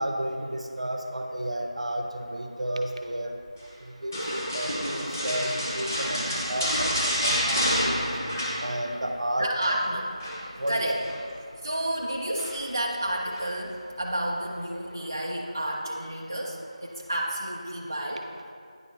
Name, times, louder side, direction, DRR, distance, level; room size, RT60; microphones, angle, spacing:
voice 1, 0.0-3.3 4.0-8.1 8.6-9.8 10.6-10.9, right 1 dB, 60° right, 4 dB, 0.7 m, -32 dB
sound 1, 4.1-9.1 9.4-9.8 10.2-11.2 12.4-12.8 13.3-13.5, equal, 25° left, 0.8 m, -29 dB
voice 2, 6.1-6.5 9.4-10.1 10.7-11.0 11.6-16.6 16.8-18.2, right 1 dB, 25° right, -3 dB, 0.3 m, -30 dB
9.4 x 4.4 x 2.9 m, 2.4 s
figure-of-eight pair, 175°, 4 cm